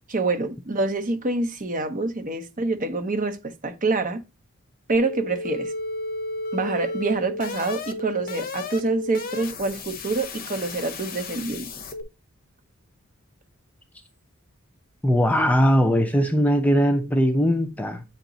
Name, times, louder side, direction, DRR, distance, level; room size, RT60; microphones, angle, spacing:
voice 1, 0.1-4.2 4.9-5.7 6.5-11.7, right 3 dB, 40° right, 0.8 m, -26 dB
sound 1, 4.9-12.0, left 2 dB, 45° left, 0.8 m, -33 dB
voice 2, 15.0-18.0, equal, 5° left, 0.4 m, -20 dB
8.7 x 3.0 x 3.8 m
head